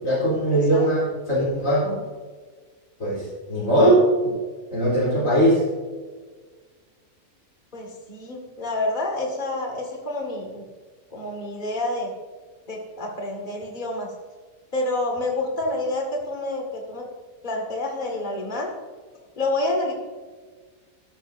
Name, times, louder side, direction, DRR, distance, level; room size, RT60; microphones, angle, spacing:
voice 1, 0.0-2.0 3.0-4.3 4.7-5.6, right 1 dB, 60° left, -6 dB, 4.1 m, -20 dB
voice 2, 0.5-0.8 7.7-10.6 11.1-12.1 12.7-14.1 14.7-17.1 17.4-18.7 19.4-19.9, left 2 dB, 30° left, 0 dB, 2.1 m, -28 dB
14.0 x 13.0 x 2.7 m, 1.5 s
omnidirectional pair, 1.6 m